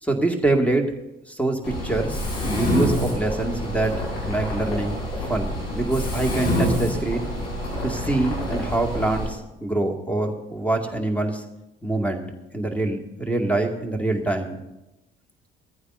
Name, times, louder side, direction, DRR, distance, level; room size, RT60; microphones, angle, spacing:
voice 1, 0.0-0.9 1.3-7.3 7.8-11.4 11.8-12.2 12.5-14.6, right 2 dB, 5° left, 3 dB, 2.2 m, -25 dB
Mechanisms, 1.6-9.2, equal, 75° left, 6.1 m, -27 dB
19.0 x 14.5 x 2.7 m, 0.98 s
figure-of-eight pair, 50°, 30 cm